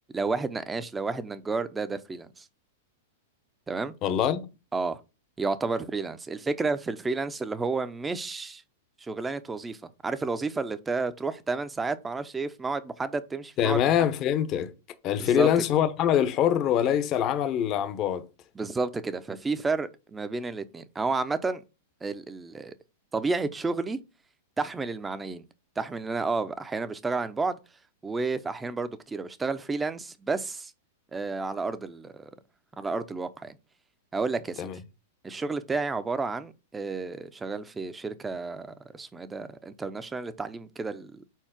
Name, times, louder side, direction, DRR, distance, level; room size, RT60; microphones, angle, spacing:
voice 1, 0.1-2.5 3.7-3.9 4.7-5.0 5.4-8.6 9.0-13.8 15.2-15.5 18.6-21.6 22.0-22.7 23.1-24.0 24.6-25.4 25.8-27.6 28.0-30.7 31.1-32.3 32.8-33.6 34.1-34.7 35.2-41.3, right 3 dB, 10° right, 0.6 m, -31 dB
voice 2, 4.0-4.4 13.6-14.7 15.0-18.3 34.6-34.8, left 10 dB, 35° left, 0.9 m, -24 dB
4.6 x 4.3 x 5.8 m
hypercardioid pair, 130°, 0 cm